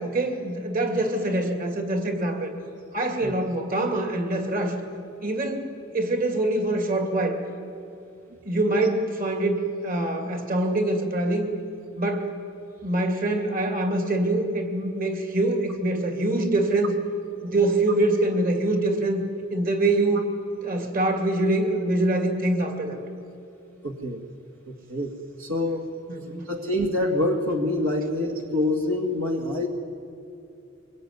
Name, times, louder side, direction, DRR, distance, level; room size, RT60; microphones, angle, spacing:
voice 1, 0.0-2.5 2.9-4.8 5.2-5.6 5.9-7.4 8.5-11.5 12.0-12.3 12.8-17.0 17.4-19.2 19.5-20.3 20.6-23.0 26.1-26.4, right 2 dB, 45° right, 5 dB, 2.6 m, -24 dB
voice 2, 23.8-24.2 24.7-25.1 25.4-25.9 26.3-29.7, left 1 dB, 75° right, 3 dB, 2.0 m, -26 dB
23.5 x 21.0 x 9.6 m, 2.8 s
head